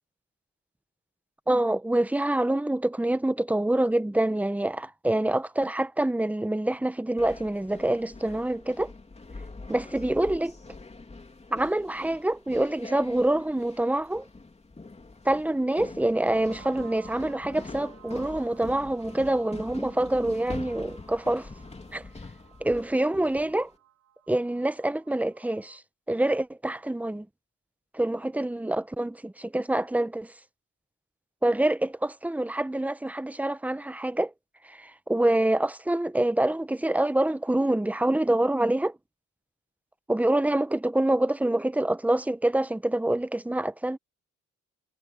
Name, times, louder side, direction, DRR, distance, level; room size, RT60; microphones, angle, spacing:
voice 1, 1.5-8.9 9.7-10.6 11.5-14.3 15.2-21.5 21.9-22.0 22.6-23.7 24.3-25.8 26.1-27.3 27.9-30.3 31.4-34.3 34.6-39.0 40.1-44.0, right 1 dB, 5° right, 0.9 m, -26 dB
sound 1, 7.2-23.7, left 3 dB, 20° left, 3.2 m, -44 dB
sound 2, 16.3-25.8, right 12 dB, 60° right, 4.5 m, -55 dB
cardioid pair, 90°, 30 cm